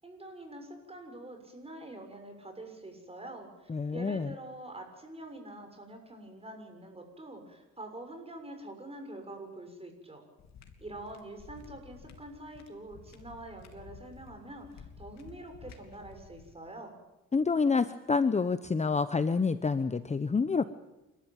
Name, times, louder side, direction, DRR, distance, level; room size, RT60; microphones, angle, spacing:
voice 1, 0.0-10.2 10.8-16.9, right 1 dB, 20° right, 5 dB, 6.7 m, -45 dB
voice 2, 3.7-4.3 17.3-20.6, left 4 dB, 20° left, 12 dB, 0.9 m, -28 dB
sound 1, 10.4-16.5, left 5 dB, 65° left, 3.1 m, -52 dB
28.5 x 13.5 x 9.1 m, 0.98 s
cardioid pair, 90°, 30 cm